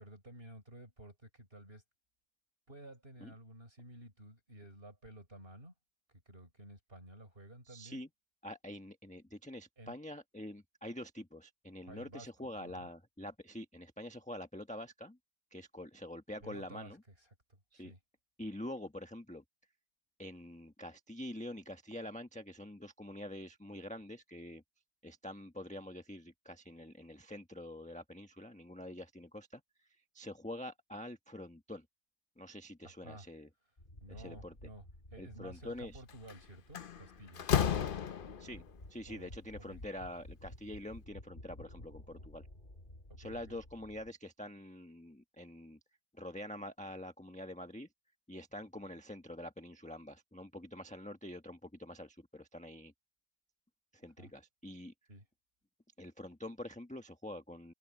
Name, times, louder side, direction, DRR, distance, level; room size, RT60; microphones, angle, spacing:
voice 1, 0.0-1.8 2.7-5.7 6.3-8.0 9.8-10.0 11.9-12.3 12.6-12.9 16.4-16.9 17.7-18.0 32.8-33.2 34.0-34.8 35.1-37.5 39.1-39.3 39.6-39.8 43.1-43.6 54.2-54.3 55.1-55.3, right 1 dB, 30° right, 6.5 m, -53 dB
voice 2, 7.7-8.1 8.4-15.2 15.5-17.0 17.8-17.9 18.4-19.4 20.2-24.6 25.0-29.9 30.1-31.8 32.4-33.5 34.1-34.5 35.2-36.0 38.4-38.6 38.9-42.5 43.2-45.8 46.1-47.9 48.3-52.9 53.9-54.9 56.0-57.7, left 1 dB, 5° left, 0.8 m, -46 dB
sound 1, 33.8-44.1, left 1 dB, 25° left, 4.3 m, -54 dB
Slam, 36.1-36.3 36.7-38.6, left 8 dB, 85° left, 0.4 m, -32 dB
omnidirectional pair, 2.0 m